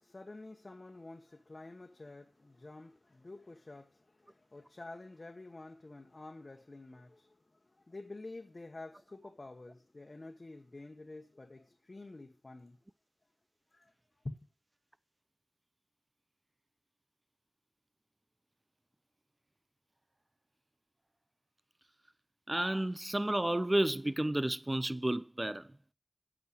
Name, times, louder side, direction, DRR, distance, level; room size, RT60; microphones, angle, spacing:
voice 1, 0.0-12.8 13.7-13.9 14.2-14.4, left 2 dB, 60° left, 1.2 m, -49 dB
voice 2, 22.5-25.7, right 1 dB, 30° right, 0.6 m, -31 dB
8.6 x 6.7 x 7.9 m
wide cardioid pair, 50°, 0 cm